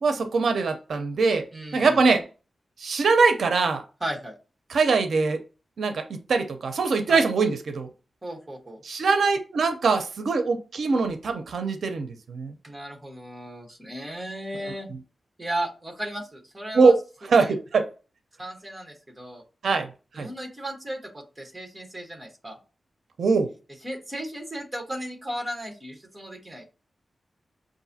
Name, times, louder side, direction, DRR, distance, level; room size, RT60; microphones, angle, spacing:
voice 1, 0.0-1.5 1.7-2.3 2.8-3.8 4.7-5.4 5.8-7.9 8.8-12.5 16.7-17.0 17.3-17.9 19.6-19.9 20.2-20.3 23.2-23.5, right 4 dB, 80° right, 0.5 m, -22 dB
voice 2, 1.5-2.0 4.0-4.4 7.1-7.3 8.2-8.8 12.6-14.9 15.4-16.9 17.3-17.5 18.4-19.4 20.1-22.6 23.8-26.6, right 1 dB, 15° right, 1.1 m, -35 dB
5.7 x 2.6 x 2.7 m
wide cardioid pair, 175°, 0 cm